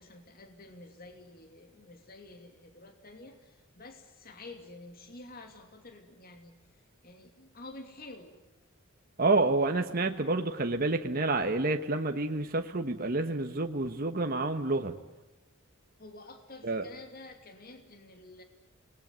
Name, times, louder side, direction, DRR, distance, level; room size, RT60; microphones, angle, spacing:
voice 1, 0.0-8.3 16.0-18.4, left 2 dB, 45° left, 6 dB, 2.8 m, -50 dB
voice 2, 9.2-14.9 16.6-16.8, right 2 dB, 45° right, 5 dB, 1.3 m, -28 dB
28.5 x 20.5 x 9.4 m, 0.98 s
head